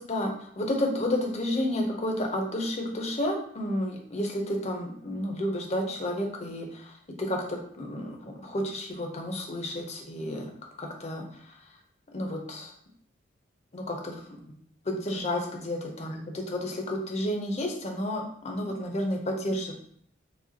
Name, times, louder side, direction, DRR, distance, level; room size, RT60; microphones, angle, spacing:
voice 1, 0.0-6.9 7.2-10.5 10.8-11.2 12.1-12.7 13.7-14.4 14.9-19.7, left 1 dB, 35° left, 1 dB, 0.7 m, -31 dB
4.8 x 2.3 x 2.8 m, 0.62 s
head